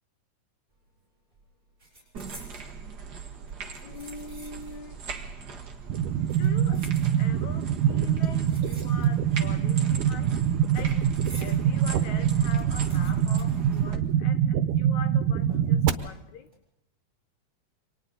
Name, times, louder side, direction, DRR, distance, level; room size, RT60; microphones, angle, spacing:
sound 1, 0.7-1.0 1.3-2.7 3.5-4.9 5.2-5.3 6.1-7.5 8.2-9.4 9.7-11.6 12.0-12.1 12.3-14.4 14.7-14.8 15.5-15.9 16.3-16.5, right 1 dB, 15° right, 6.6 m, -50 dB
sound 2, 2.1-14.0, right 5 dB, 40° right, 1.9 m, -40 dB
voice 1, 3.8-16.6, left 5 dB, 70° left, 9 dB, 2.6 m, -44 dB
sound 3, 5.9-15.9, right 9 dB, 85° right, 2.5 m, -24 dB
28.5 x 24.0 x 4.1 m, 0.83 s
omnidirectional pair, 3.5 m